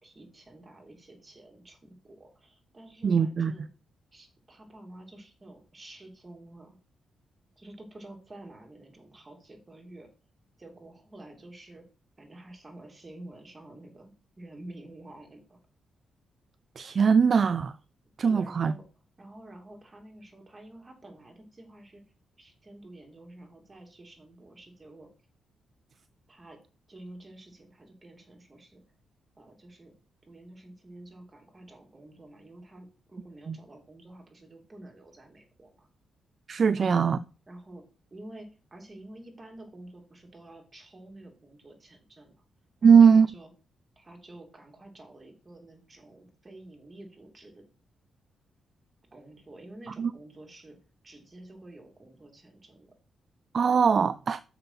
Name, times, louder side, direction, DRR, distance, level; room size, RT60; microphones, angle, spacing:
voice 1, 0.0-3.7 4.1-6.8 7.6-10.1 10.6-11.8 12.2-15.6 18.3-18.8 19.2-22.0 22.4-25.1 26.3-26.6 26.9-28.8 29.4-29.9 30.2-35.9 36.7-37.1 37.5-37.8 38.1-42.4 42.8-43.5 44.0-47.6 49.1-50.8 51.0-52.9, right 1 dB, 25° right, 3.0 m, -49 dB
voice 2, 3.0-3.5 16.8-17.7 18.2-18.7 33.5-33.6 36.5-37.2 42.8-43.3 50.0-50.1 53.5-54.4, right 6 dB, 50° right, 0.4 m, -20 dB
6.8 x 5.6 x 5.9 m
cardioid pair, 80°, 0 cm